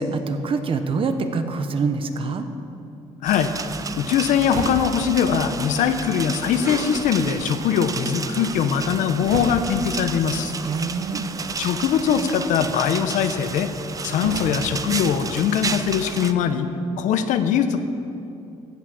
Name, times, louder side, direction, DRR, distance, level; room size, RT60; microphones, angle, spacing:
voice 1, 0.0-2.5 10.6-11.3, right 4 dB, 45° right, 8 dB, 1.0 m, -25 dB
voice 2, 3.2-3.5 4.0-10.5 11.6-13.7 14.0-16.7 17.0-17.8, left 7 dB, 85° left, 9 dB, 0.8 m, -21 dB
sound 1, 3.3-16.3, right 5 dB, 30° right, 0.5 m, -32 dB
sound 2, 4.1-15.7, right 3 dB, 85° right, 1.4 m, -39 dB
16.0 x 6.2 x 6.9 m, 2.7 s
cardioid pair, 110°, 12 cm